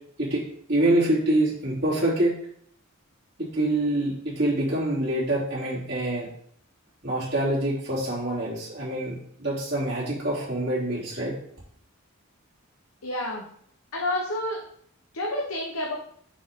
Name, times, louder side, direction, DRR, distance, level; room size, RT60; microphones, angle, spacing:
voice 1, 0.7-2.3 3.4-6.3 7.0-11.3, right 1 dB, 50° right, -8 dB, 2.9 m, -25 dB
voice 2, 13.0-13.5 13.9-14.6 15.1-15.9, left 1 dB, 85° left, -2 dB, 1.0 m, -29 dB
6.4 x 4.6 x 3.7 m, 0.64 s
head